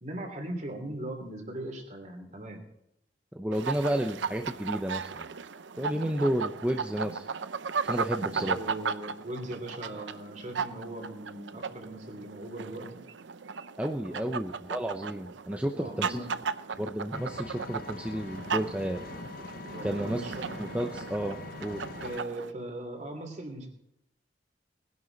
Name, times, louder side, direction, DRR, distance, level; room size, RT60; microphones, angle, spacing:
voice 1, 0.0-2.6 8.3-12.9 14.0-14.3 15.7-16.3 19.7-20.4 22.0-23.7, right 1 dB, 40° right, 3 dB, 3.1 m, -39 dB
voice 2, 3.4-5.3 5.8-7.2 7.8-8.6 13.8-16.2 16.8-19.0 19.8-20.2 20.6-21.8, right 1 dB, 5° right, 3 dB, 0.7 m, -31 dB
sound 1, 3.5-22.5, right 5 dB, 80° right, 0.7 m, -36 dB
Engine, 17.1-22.2, left 3 dB, 50° left, 0.8 m, -43 dB
20.0 x 11.0 x 4.0 m, 0.80 s
head